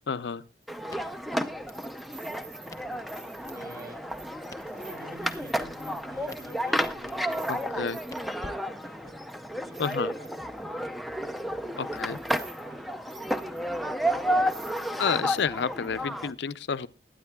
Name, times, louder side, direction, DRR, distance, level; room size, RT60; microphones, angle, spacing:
voice 1, 0.1-0.4 7.5-8.0 9.8-10.1 11.8-12.2 15.0-16.9, left 6 dB, 75° left, 0.5 m, -30 dB
sound 1, 0.6-0.7 1.7-8.3 8.8-8.9 9.3-10.6 11.4-11.5 12.0-12.6 12.9-13.8 14.2-14.3 14.5-15.9 16.2-16.3, right 5 dB, 75° right, 2.4 m, -51 dB
sound 2, 0.7-16.3, equal, ahead, 0.4 m, -32 dB
voice 2, 0.8-1.1 2.4-3.1 3.5-4.0 4.7-7.9 8.4-9.3 9.6-11.0 11.9-15.0, right 1 dB, 55° right, 7.5 m, -50 dB
Crackle, 0.9-9.2, left 1 dB, 20° left, 0.9 m, -52 dB
20.5 x 9.4 x 2.2 m
head